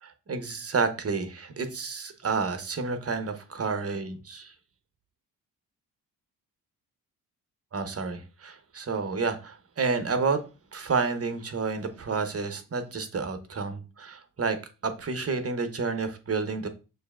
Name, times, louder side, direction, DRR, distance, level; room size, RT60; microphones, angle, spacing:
voice 1, 0.0-4.5 7.7-10.4 10.7-14.6 14.8-16.7, right 4 dB, 30° right, 8 dB, 1.0 m, -30 dB
6.2 x 3.1 x 2.4 m, 0.32 s
hypercardioid pair, 40°, 44 cm